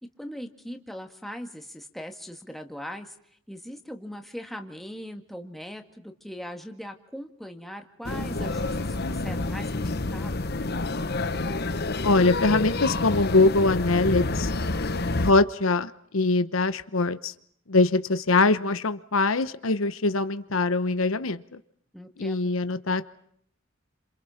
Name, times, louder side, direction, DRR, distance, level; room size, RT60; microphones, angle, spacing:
voice 1, 0.0-3.2 3.5-10.4 21.9-22.5, equal, ahead, 4 dB, 2.0 m, -40 dB
sound 1, 8.0-15.3, left 2 dB, 50° left, 1.1 m, -28 dB
voice 2, 12.0-14.5 15.2-17.3 17.7-21.6 22.2-23.1, left 3 dB, 85° left, 12 dB, 1.0 m, -23 dB
29.0 x 27.5 x 5.9 m, 0.68 s
head